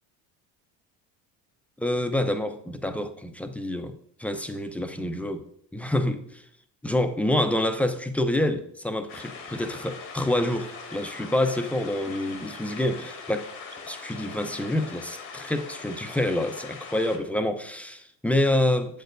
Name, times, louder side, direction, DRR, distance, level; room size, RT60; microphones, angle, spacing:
voice 1, 1.8-3.9 4.2-5.4 5.7-6.4 6.8-13.5 13.8-19.0, left 1 dB, 5° left, 0.5 m, -27 dB
sound 1, 9.1-17.2, left 5 dB, 85° left, 1.5 m, -41 dB
7.6 x 6.7 x 2.6 m
supercardioid pair, 95°, 39 cm